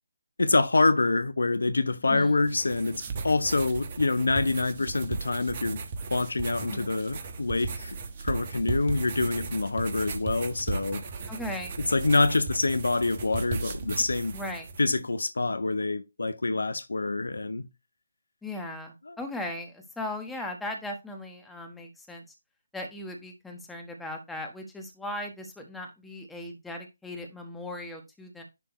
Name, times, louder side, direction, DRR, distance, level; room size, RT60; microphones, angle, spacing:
voice 1, 0.4-5.8 6.1-8.0 8.2-11.0 11.9-14.4 14.8-17.7 19.1-19.2, left 3 dB, 70° left, 0.7 m, -26 dB
voice 2, 2.0-2.4 6.7-7.0 11.3-11.7 14.3-14.7 18.4-22.2 22.7-28.4, left 1 dB, 5° left, 1.3 m, -38 dB
sound 1, 2.3-15.0, right 4 dB, 40° right, 1.3 m, -36 dB
10.5 x 3.5 x 3.1 m
figure-of-eight pair, 145°, 0 cm